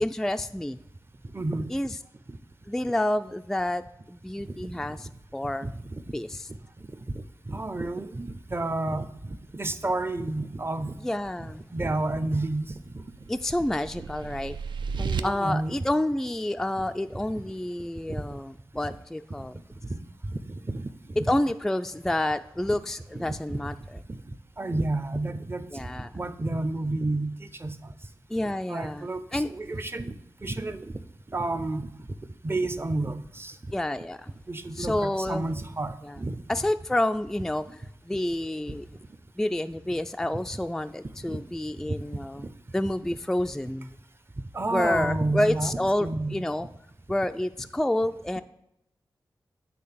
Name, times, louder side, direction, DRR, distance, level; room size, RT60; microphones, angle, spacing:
voice 1, 0.0-0.8 1.7-1.9 2.7-5.7 6.1-6.5 11.0-11.6 13.3-14.6 15.2-19.6 21.2-24.0 25.7-26.2 28.3-29.5 33.7-34.4 34.7-35.5 36.0-36.2 36.5-38.9 39.4-42.5 42.7-43.9 44.7-46.7 47.1-48.4, left 1 dB, 5° left, 9 dB, 0.3 m, -29 dB
voice 2, 1.3-1.7 4.5-4.8 5.4-6.0 6.5-6.6 7.1-10.9 11.4-13.0 14.9-15.8 18.8-19.0 19.9-20.0 20.3-21.2 23.3-23.6 24.1-24.2 24.6-25.7 26.1-27.9 28.7-30.9 31.3-31.9 32.4-33.6 34.5-36.4 41.3-41.4 41.9-42.0 42.4-42.5 44.5-46.4, right 2 dB, 30° right, 12 dB, 0.6 m, -31 dB
sound 1, 12.5-15.2, right 6 dB, 70° right, 0.4 m, -35 dB
8.6 x 3.3 x 5.8 m, 0.84 s
cardioid pair, 45°, 8 cm